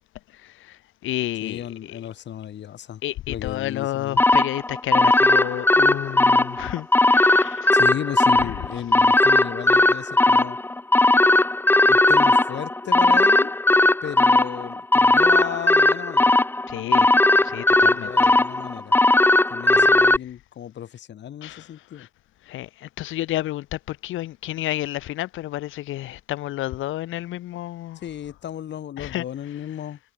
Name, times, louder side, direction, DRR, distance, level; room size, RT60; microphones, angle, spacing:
voice 1, 0.3-2.0 3.0-7.7 8.4-8.5 16.7-17.1 17.4-18.3 19.7-19.9 21.4-21.7 21.9-22.1 22.5-28.0 29.0-29.2, left 15 dB, 80° left, 0.9 m, -31 dB
voice 2, 1.4-3.0 3.3-4.2 7.7-10.6 11.8-13.5 14.0-16.3 17.9-19.0 19.5-22.1 28.0-30.0, left 10 dB, 65° left, 1.9 m, -34 dB
sound 1, 4.2-20.2, left 2 dB, 10° left, 0.8 m, -18 dB
cardioid pair, 90°, 20 cm